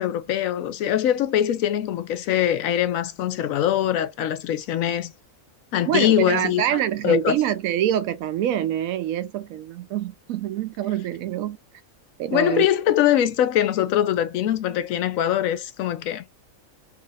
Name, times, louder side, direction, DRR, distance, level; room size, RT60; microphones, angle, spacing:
voice 1, 0.0-5.1 5.7-7.4 12.3-16.3, left 11 dB, 80° left, 1.0 m, -22 dB
voice 2, 5.8-11.6 12.2-12.7, right 11 dB, 85° right, 1.0 m, -25 dB
2.8 x 2.5 x 3.9 m
omnidirectional pair, 1.4 m